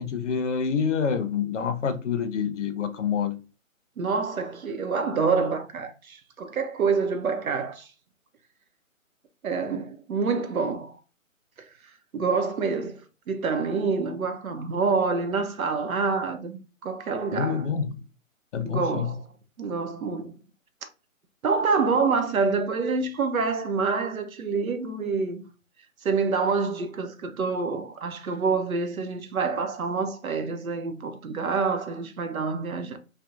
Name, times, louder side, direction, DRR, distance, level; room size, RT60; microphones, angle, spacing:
voice 1, 0.0-3.4 17.3-17.9 18.5-19.1, left 6 dB, 60° left, 0.6 m, -27 dB
voice 2, 4.0-7.9 9.4-11.0 12.1-17.7 18.6-19.3 19.6-20.4 21.4-25.5 26.0-33.0, right 4 dB, 85° right, 0.7 m, -27 dB
2.7 x 2.1 x 2.3 m
figure-of-eight pair, 155°, 41 cm